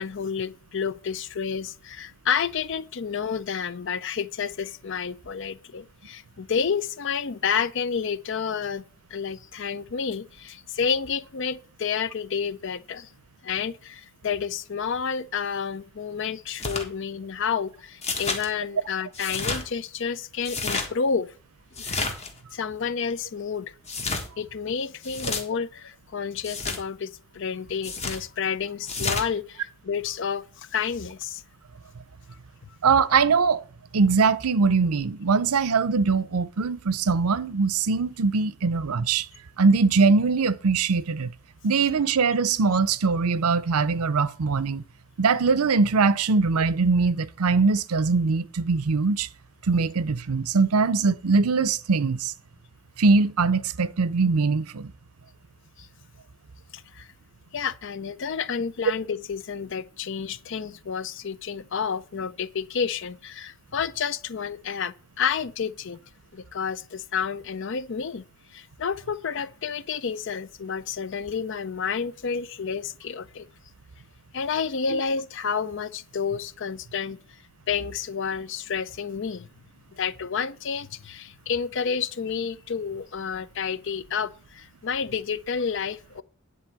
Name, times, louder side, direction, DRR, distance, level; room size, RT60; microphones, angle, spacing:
voice 1, 0.0-8.8 9.1-13.1 13.4-21.3 21.8-22.1 22.5-23.7 24.4-31.4 32.7-32.8 55.8-55.9 56.7-57.1 57.5-66.0 66.3-68.2 68.5-73.5 74.3-77.2 77.7-79.5 79.9-86.2, left 6 dB, 55° left, 0.5 m, -30 dB
sound 1, 16.5-16.9 18.0-18.5 19.1-19.6 20.4-20.9 21.8-22.3 23.9-24.3 25.0-25.4 26.4-26.8 27.8-28.2 28.9-29.3, left 3 dB, 30° left, 1.4 m, -30 dB
voice 2, 32.8-33.6 33.9-39.3 39.6-41.3 41.6-44.8 45.2-49.3 49.6-52.3 53.0-54.9 74.9-75.0, right 4 dB, 90° right, 0.6 m, -22 dB
10.0 x 4.1 x 7.4 m
head